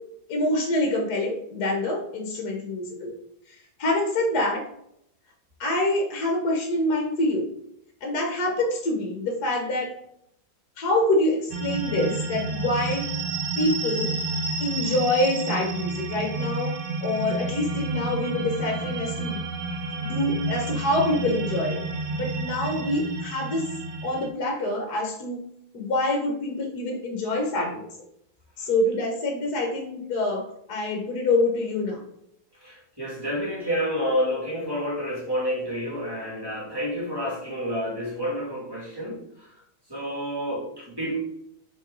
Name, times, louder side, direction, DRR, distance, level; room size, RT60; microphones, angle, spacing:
voice 1, 0.3-3.2 3.8-4.6 5.6-7.5 8.0-9.9 10.8-13.1 13.6-14.1 14.6-16.7 17.0-19.4 20.0-21.8 22.2-23.7 24.0-25.5 25.7-27.9 28.6-30.4 30.7-32.0, left 1 dB, 60° left, 2 dB, 1.5 m, -26 dB
sound 1, 11.5-24.3, right 3 dB, 80° right, 1.6 m, -30 dB
voice 2, 32.6-39.5 39.9-41.2, equal, 10° right, -5 dB, 2.5 m, -29 dB
7.1 x 3.8 x 3.8 m, 0.75 s
omnidirectional pair, 2.1 m